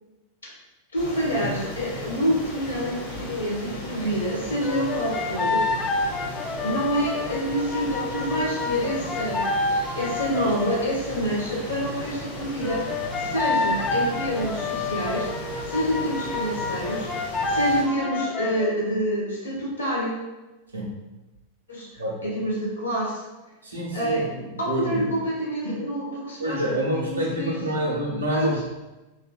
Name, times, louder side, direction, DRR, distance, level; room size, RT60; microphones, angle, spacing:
voice 1, 0.9-5.6 6.6-12.8 13.1-15.3 15.6-20.1 21.7-21.9 22.2-23.2 23.9-24.3 24.6-27.9 28.3-28.6, equal, 75° left, -5 dB, 1.1 m, -27 dB
sound 1, 0.9-17.8, equal, 55° left, 0.9 m, -36 dB
sound 2, 4.6-10.8 12.6-18.8, left 3 dB, 20° left, 0.3 m, -28 dB
voice 2, 23.6-25.1 26.4-28.6, equal, 80° right, -4 dB, 0.8 m, -27 dB
3.2 x 2.9 x 2.2 m, 1.1 s
figure-of-eight pair, 90°, 0 cm